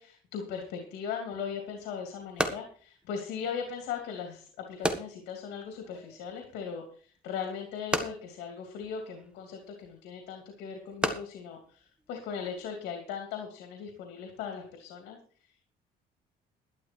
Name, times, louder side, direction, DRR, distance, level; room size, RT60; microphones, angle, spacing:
voice 1, 0.0-15.2 15.4-15.7, left 7 dB, 90° left, 4 dB, 2.8 m, -39 dB
sound 1, 1.3-12.7, right 1 dB, 5° right, 1.6 m, -38 dB
12.0 x 12.0 x 4.5 m, 0.44 s
cardioid pair, 110°, 17 cm